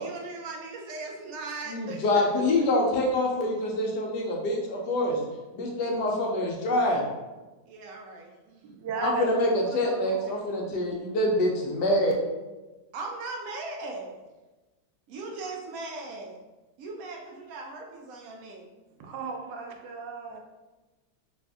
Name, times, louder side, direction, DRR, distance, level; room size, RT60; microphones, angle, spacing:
voice 1, 0.0-2.4 5.8-5.9 7.7-8.6 10.4-10.5 12.9-14.1 15.1-16.4 16.8-18.6, right 3 dB, 65° right, 0 dB, 0.9 m, -39 dB
voice 2, 1.7-5.2 5.5-7.0 9.0-12.1, left 1 dB, 75° left, -1 dB, 1.2 m, -26 dB
voice 3, 8.6-9.3 9.6-10.3 19.0-20.4, right 4 dB, 90° right, 2 dB, 1.3 m, -36 dB
3.3 x 2.5 x 3.4 m, 1.2 s
omnidirectional pair, 1.9 m